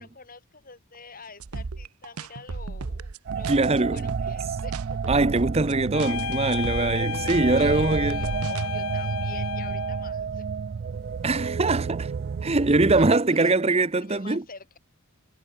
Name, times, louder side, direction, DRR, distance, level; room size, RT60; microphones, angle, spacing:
voice 1, 0.0-5.1 7.5-10.5 13.0-14.8, left 4 dB, 40° left, 3.9 m, -46 dB
sound 1, 1.4-8.7, right 4 dB, 85° right, 0.8 m, -35 dB
sound 2, 3.3-13.1, right 6 dB, 45° right, 0.3 m, -31 dB
voice 2, 3.5-4.0 5.1-8.2 11.2-12.1 12.4-14.4, right 2 dB, 30° right, 0.8 m, -22 dB
sound 3, 5.9-10.1, left 6 dB, 75° left, 1.0 m, -32 dB
head